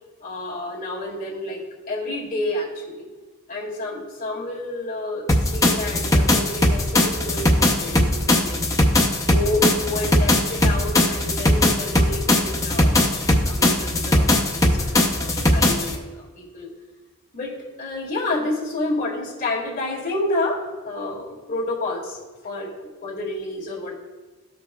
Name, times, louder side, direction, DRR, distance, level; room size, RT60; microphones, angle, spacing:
voice 1, 0.2-3.1 3.5-8.6 9.1-16.7 17.3-22.2 22.4-24.0, left 2 dB, 40° left, -5 dB, 2.1 m, -29 dB
sound 1, 5.3-15.9, left 1 dB, 15° left, 0.7 m, -19 dB
13.5 x 5.2 x 2.3 m, 1.2 s
head